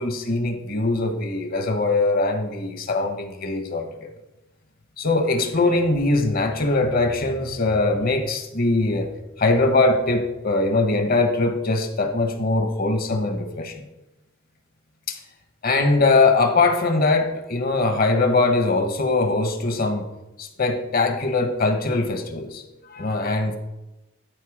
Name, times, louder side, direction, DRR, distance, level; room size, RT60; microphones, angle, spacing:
voice 1, 0.0-4.1 5.0-9.1 9.4-13.8 15.1-15.2 15.6-20.1 20.4-23.6, left 3 dB, 45° left, 6 dB, 1.3 m, -22 dB
12.5 x 4.6 x 4.9 m, 0.99 s
head